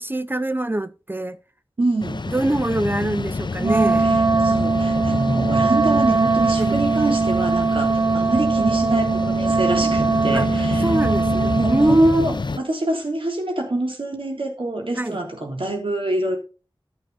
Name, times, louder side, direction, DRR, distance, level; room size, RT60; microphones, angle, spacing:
voice 1, 0.0-1.4 2.3-4.1 6.6-6.8 10.3-10.5 10.8-12.4 14.9-15.2, right 1 dB, 25° right, 0.6 m, -23 dB
voice 2, 1.8-2.2 4.0-4.2 4.4-10.9 11.5-16.4, right 2 dB, 80° right, 3.2 m, -26 dB
sound 1, 2.0-12.6, left 3 dB, 60° left, 0.6 m, -28 dB
Wind instrument woodwind instrument, 3.6-12.0, right 4 dB, 60° right, 0.8 m, -20 dB
11.0 x 8.6 x 4.0 m
wide cardioid pair, 50°, 9 cm